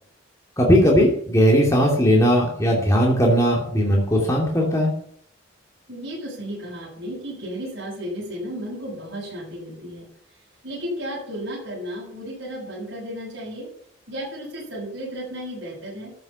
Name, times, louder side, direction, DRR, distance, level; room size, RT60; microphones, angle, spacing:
voice 1, 0.6-4.9, equal, 15° left, -2 dB, 2.6 m, -18 dB
voice 2, 5.9-10.1 10.6-13.7 14.1-16.1, equal, 55° right, -7 dB, 7.3 m, -33 dB
13.5 x 7.8 x 7.0 m, 0.65 s
head